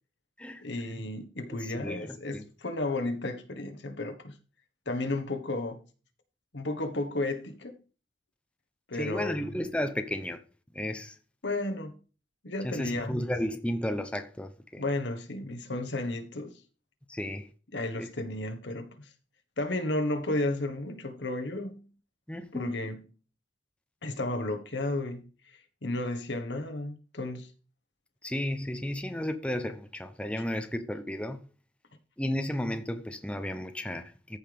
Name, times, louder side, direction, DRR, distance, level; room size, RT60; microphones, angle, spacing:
voice 1, 0.6-4.4 4.9-5.8 6.5-7.8 8.9-9.6 11.4-12.0 12.4-13.3 14.8-16.6 17.7-19.1 19.6-21.9 22.5-23.1 24.0-27.5, left 2 dB, 75° left, 1.3 m, -33 dB
voice 2, 1.5-2.4 9.0-10.4 10.7-11.1 12.6-14.8 17.1-17.5 18.0-18.1 22.3-22.8 28.2-31.4 32.2-34.4, left 1 dB, 5° left, 0.7 m, -33 dB
14.0 x 5.7 x 3.4 m
head